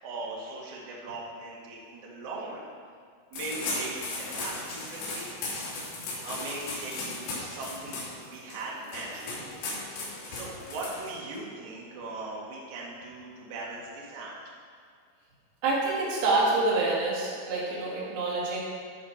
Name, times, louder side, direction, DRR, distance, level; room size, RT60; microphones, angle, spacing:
voice 1, 0.0-2.6 3.3-5.3 6.0-9.5 10.3-14.3, right 2 dB, 50° right, -4 dB, 2.5 m, -39 dB
sound 1, 3.3-11.4, left 2 dB, 85° left, 5.7 m, -36 dB
voice 2, 15.6-18.6, right 3 dB, 75° right, -6 dB, 4.7 m, -27 dB
15.5 x 6.7 x 4.5 m, 2.2 s
omnidirectional pair, 5.8 m